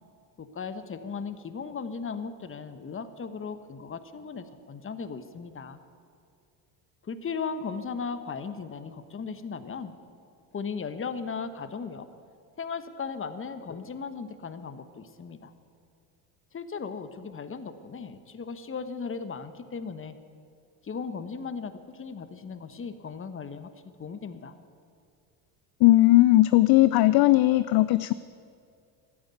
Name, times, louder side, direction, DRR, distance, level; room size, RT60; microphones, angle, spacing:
voice 1, 0.4-5.8 7.0-9.9 10.5-12.1 12.6-15.5 16.5-20.2 20.8-23.7 24.0-24.5, left 5 dB, 25° left, 11 dB, 1.1 m, -37 dB
voice 2, 25.8-28.1, left 17 dB, 50° left, 15 dB, 0.5 m, -18 dB
13.5 x 9.3 x 9.4 m, 2.3 s
supercardioid pair, 85°, 49 cm